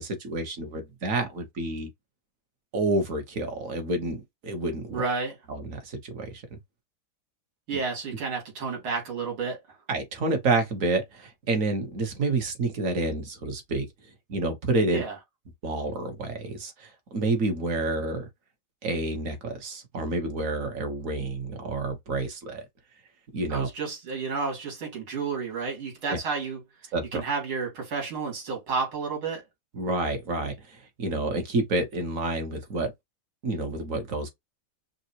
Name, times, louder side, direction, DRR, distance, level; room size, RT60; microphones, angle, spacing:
voice 1, 0.0-1.9 2.7-5.0 5.5-6.4 7.7-7.8 9.9-13.9 14.3-15.0 15.6-18.3 18.8-22.6 23.3-23.7 26.1-26.2 26.9-27.2 29.7-32.9 33.4-34.3, right 2 dB, 45° right, 1.3 m, -29 dB
voice 2, 4.9-5.3 7.7-9.6 14.9-15.1 23.5-26.6 27.1-29.4, right 4 dB, 85° right, 3.2 m, -31 dB
5.7 x 2.4 x 2.8 m
omnidirectional pair, 2.2 m